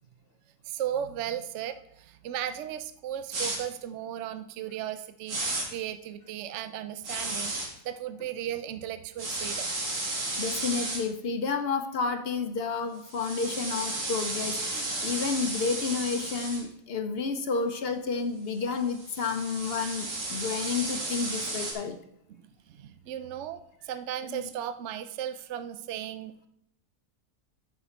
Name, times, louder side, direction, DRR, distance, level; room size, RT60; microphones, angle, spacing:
voice 1, 0.7-9.7 22.4-26.5, right 10 dB, 65° right, 11 dB, 0.8 m, -36 dB
sound 1, 3.3-3.6 5.3-5.6 7.0-7.7 9.2-11.0 13.0-16.6 18.7-21.7, right 2 dB, 80° right, 2.5 m, -33 dB
voice 2, 10.4-22.0 24.3-24.5, left 5 dB, 55° left, 8 dB, 0.7 m, -31 dB
9.7 x 5.8 x 4.4 m, 0.75 s
omnidirectional pair, 1.6 m